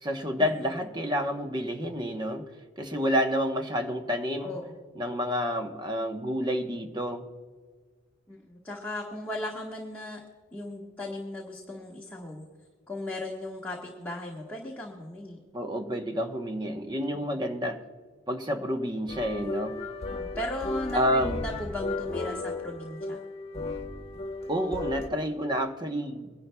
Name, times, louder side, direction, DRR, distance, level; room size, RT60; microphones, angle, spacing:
voice 1, 0.0-2.5 2.8-4.5 5.0-7.3 15.5-17.8 18.3-19.8 20.9-21.3 24.5-26.3, equal, 20° right, 5 dB, 0.9 m, -29 dB
voice 2, 4.4-4.7 8.3-10.2 10.5-12.5 12.9-15.4 20.1-23.2, left 1 dB, 10° left, -4 dB, 1.2 m, -37 dB
sound 1, 19.1-25.1, left 2 dB, 30° left, 0.8 m, -35 dB
24.5 x 11.0 x 2.2 m, 1.5 s
head